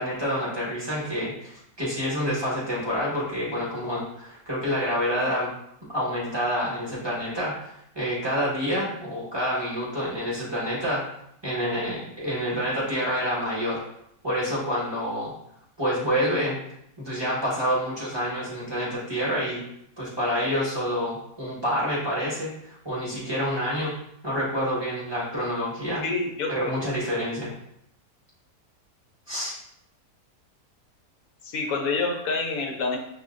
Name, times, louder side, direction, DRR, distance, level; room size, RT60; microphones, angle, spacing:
voice 1, 0.0-5.5 5.9-11.0 11.4-13.8 14.2-15.3 15.8-16.6 17.0-19.6 20.0-24.0 24.2-26.0 26.5-27.5 29.3-29.5, equal, 15° right, -7 dB, 1.1 m, -28 dB
voice 2, 26.0-26.8 31.4-33.0, left 3 dB, 65° left, 2 dB, 1.1 m, -27 dB
5.7 x 2.6 x 2.5 m, 0.76 s
omnidirectional pair, 1.7 m